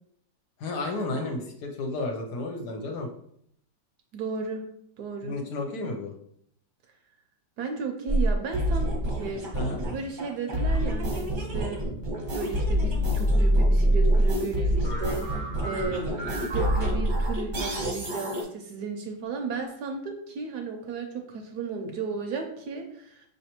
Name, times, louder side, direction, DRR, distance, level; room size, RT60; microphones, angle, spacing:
voice 1, 0.6-3.1 5.2-6.1 9.5-9.8 11.5-11.7, left 2 dB, 70° left, 2 dB, 1.2 m, -32 dB
voice 2, 4.1-4.6 5.0-5.4 7.6-9.4 9.9-11.8 12.3-23.3, right 4 dB, 70° right, 3 dB, 1.1 m, -34 dB
sound 1, 8.1-18.4, right 1 dB, 40° right, 0.7 m, -26 dB
5.7 x 3.2 x 2.9 m, 0.70 s
omnidirectional pair, 2.0 m